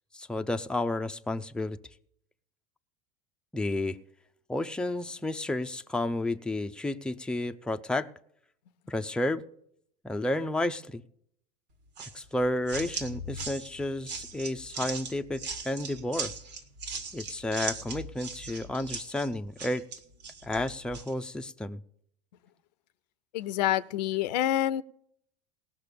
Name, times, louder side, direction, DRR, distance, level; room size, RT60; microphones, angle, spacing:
voice 1, 0.1-1.8 3.5-4.0 4.5-8.1 8.9-9.4 10.0-11.0 12.1-16.3 17.1-19.8 20.4-21.8, left 1 dB, 5° left, 7 dB, 0.6 m, -31 dB
sound 1, 12.0-21.1, right 4 dB, 80° right, 2.1 m, -39 dB
voice 2, 23.3-24.8, left 12 dB, 80° left, 16 dB, 0.7 m, -27 dB
18.5 x 6.1 x 6.8 m, 0.67 s
hypercardioid pair, 90°, 21 cm